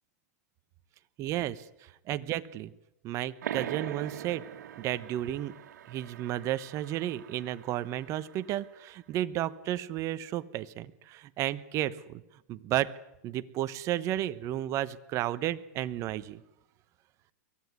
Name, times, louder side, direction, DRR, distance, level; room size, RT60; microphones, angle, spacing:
voice 1, 1.2-2.7 3.0-4.4 4.8-5.6 5.9-12.2 12.5-12.9 13.2-16.4, right 13 dB, 35° right, 14 dB, 1.0 m, -33 dB
sound 1, 3.4-8.7, right 10 dB, 75° right, 2.3 m, -42 dB
23.0 x 16.0 x 9.6 m, 0.92 s
supercardioid pair, 145°, 9 cm